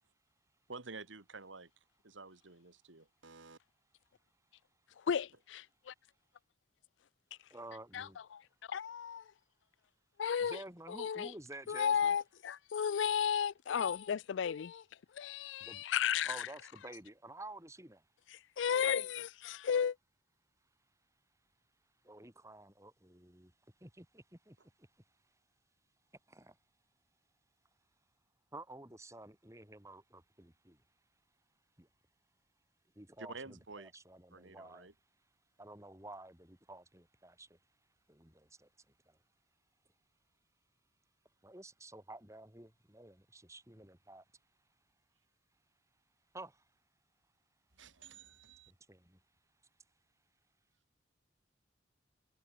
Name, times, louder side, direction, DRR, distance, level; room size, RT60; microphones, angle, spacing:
voice 1, 0.7-1.7 2.0-3.6 33.2-33.9 34.3-34.9 47.8-48.7, right 3 dB, 85° right, 2.5 m, -50 dB
voice 2, 5.1-5.9 7.9-8.4 8.7-9.2 10.2-10.6 11.0-11.3 11.7-14.8 15.2-16.4 18.6-19.9, left 8 dB, 75° left, 0.4 m, -34 dB
voice 3, 7.5-8.2 10.4-12.2 15.6-15.8 16.3-18.0 22.0-23.5 23.8-24.9 26.3-26.6 28.5-30.8 31.8-31.9 32.9-34.9 35.6-37.6 38.1-38.7 39.1-39.2 41.4-44.2 46.3-46.6 48.7-49.2, right 2 dB, 15° right, 6.2 m, -51 dB
head